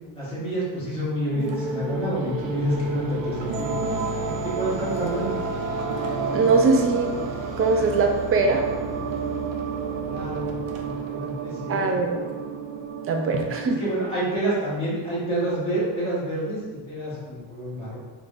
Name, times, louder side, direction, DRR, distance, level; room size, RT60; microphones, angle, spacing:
voice 1, 0.1-3.7 4.2-5.4 10.1-11.8 13.6-18.0, right 1 dB, 10° left, -9 dB, 1.4 m, -28 dB
sound 1, 1.3-14.3, right 4 dB, 80° right, 0.6 m, -30 dB
voice 2, 6.3-7.2 7.6-8.6 11.7-12.2 13.1-13.8, right 3 dB, 35° right, 3 dB, 0.4 m, -21 dB
4.9 x 2.5 x 2.5 m, 1.4 s
cardioid pair, 155°, 45 cm